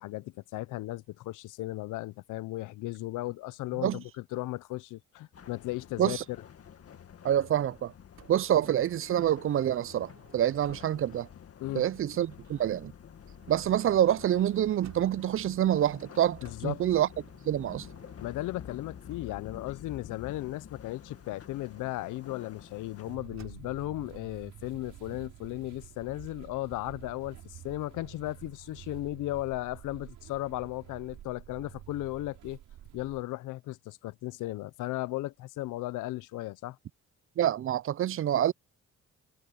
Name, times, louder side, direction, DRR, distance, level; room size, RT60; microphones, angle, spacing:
voice 1, 0.0-6.4 11.6-11.8 16.4-16.8 18.2-32.6 32.9-36.8, left 17 dB, 85° left, 0.7 m, -36 dB
sound 1, 5.3-23.2, left 8 dB, 50° left, 2.0 m, -49 dB
voice 2, 7.2-7.9 8.3-11.3 11.7-12.9 13.5-17.1 17.5-17.9 37.4-38.5, right 11 dB, 45° right, 0.5 m, -27 dB
Motor vehicle (road) / Sliding door, 8.2-11.2 12.2-15.5 16.4-19.7 20.9-23.9, right 9 dB, 60° right, 4.3 m, -59 dB
sound 2, 23.1-33.2, right 12 dB, 80° right, 6.1 m, -49 dB
cardioid pair, 90°, 30 cm